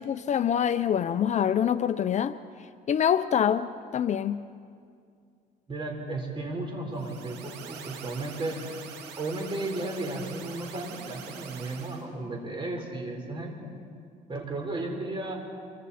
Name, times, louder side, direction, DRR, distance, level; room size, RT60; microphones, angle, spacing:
voice 1, 0.0-2.4 2.9-4.4, left 9 dB, 45° left, 12 dB, 0.6 m, -25 dB
voice 2, 5.7-8.6 9.1-13.7 14.3-15.4, right 2 dB, 30° right, 2 dB, 4.2 m, -34 dB
sound 1, 6.9-12.0, right 7 dB, 90° right, 2.2 m, -44 dB
27.5 x 24.5 x 4.2 m, 2.3 s
cardioid pair, 110°, 17 cm